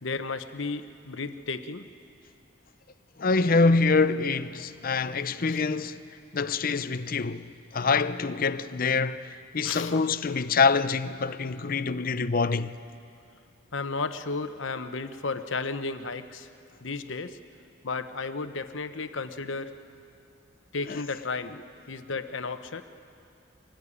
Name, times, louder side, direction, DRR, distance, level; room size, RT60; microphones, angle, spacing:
voice 1, 0.0-1.8 5.4-5.6 9.6-10.0 13.7-16.5 16.8-17.4 17.8-19.7 20.7-21.5 21.9-22.8, left 4 dB, 75° left, 1.0 m, -33 dB
voice 2, 3.2-6.0 6.3-7.5 7.7-12.8 20.9-21.0, left 4 dB, 45° left, 0.7 m, -25 dB
24.0 x 17.5 x 9.9 m
head